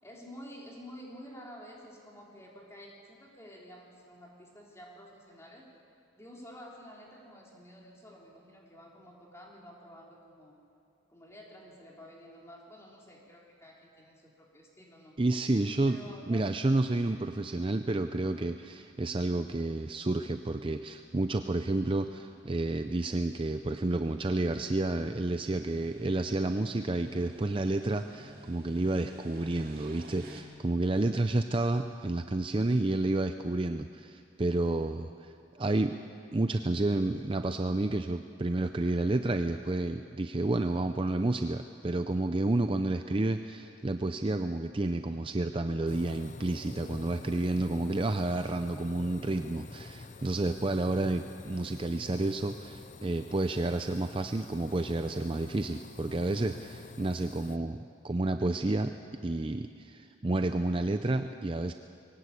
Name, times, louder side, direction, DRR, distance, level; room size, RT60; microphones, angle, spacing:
voice 1, 0.0-5.7 6.1-10.6 11.1-15.2 15.9-16.5, equal, 15° left, -2 dB, 3.4 m, -50 dB
voice 2, 15.2-16.0 16.3-35.9 36.3-57.8 58.0-58.9 59.2-61.7, right 2 dB, 25° right, 8 dB, 0.5 m, -30 dB
sound 1, 17.8-30.4, right 1 dB, 45° right, 2.5 m, -54 dB
sound 2, 45.9-57.6, left 3 dB, 35° left, 0.5 m, -48 dB
22.0 x 18.0 x 8.4 m, 2.4 s
head